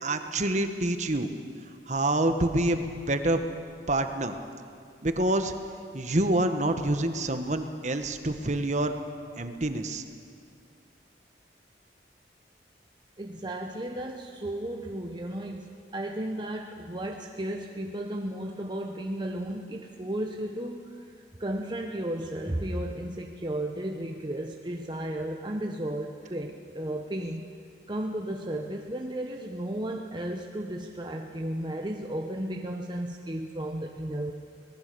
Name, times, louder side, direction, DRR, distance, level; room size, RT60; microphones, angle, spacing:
voice 1, 0.0-1.3 1.9-3.4 3.9-4.3 5.0-5.5 5.9-8.9 9.4-10.0, right 1 dB, 40° right, 7 dB, 1.3 m, -27 dB
voice 2, 13.2-21.0 21.4-27.5 27.9-34.3, right 1 dB, 25° right, 2 dB, 0.9 m, -34 dB
25.0 x 19.0 x 6.9 m, 2.3 s
head